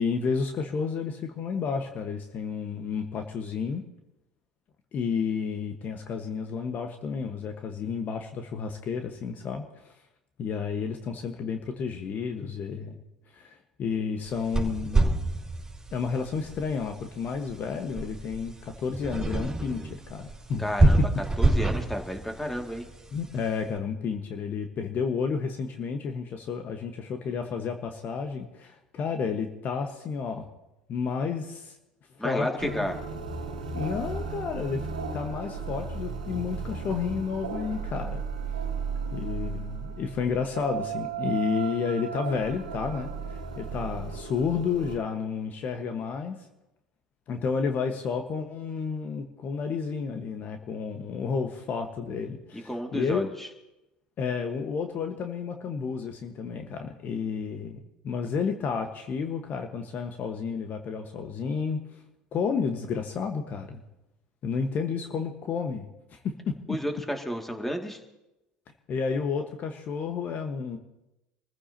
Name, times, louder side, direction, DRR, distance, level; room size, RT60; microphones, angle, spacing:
voice 1, 0.0-3.8 4.9-9.9 10.4-13.0 13.3-15.3 15.9-21.1 23.1-30.5 30.9-31.7 32.2-32.9 33.7-34.9 35.1-38.2 39.1-46.4 47.3-53.3 54.2-62.0 62.3-63.8 64.4-66.6 68.9-70.8, left 5 dB, 45° left, 5 dB, 1.4 m, -31 dB
sound 1, 14.2-23.6, right 2 dB, 15° right, 4.3 m, -28 dB
voice 2, 20.6-21.0 21.4-22.9 32.2-33.0 52.5-53.5 66.7-68.0, equal, 5° left, 3 dB, 2.4 m, -31 dB
sound 2, 32.6-45.0, right 5 dB, 90° right, 1.7 m, -35 dB
26.5 x 15.0 x 2.9 m, 0.93 s
hypercardioid pair, 70°, 4 cm